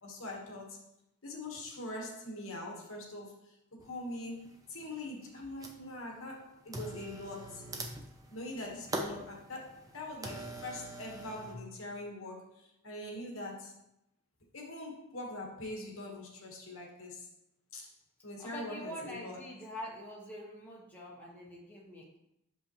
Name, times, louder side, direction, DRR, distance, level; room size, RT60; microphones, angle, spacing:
voice 1, 0.0-0.8 1.2-3.5 3.8-7.7 8.3-13.8 14.5-17.3 17.7-17.9 18.2-19.4, left 1 dB, 70° left, 0 dB, 1.3 m, -43 dB
sound 1, 3.8-3.9 4.5-5.0 5.3-6.0 6.7-11.6, right 1 dB, 15° right, 0.5 m, -42 dB
voice 2, 18.4-22.2, equal, 10° left, -5 dB, 1.2 m, -45 dB
6.2 x 5.4 x 3.0 m, 0.81 s
head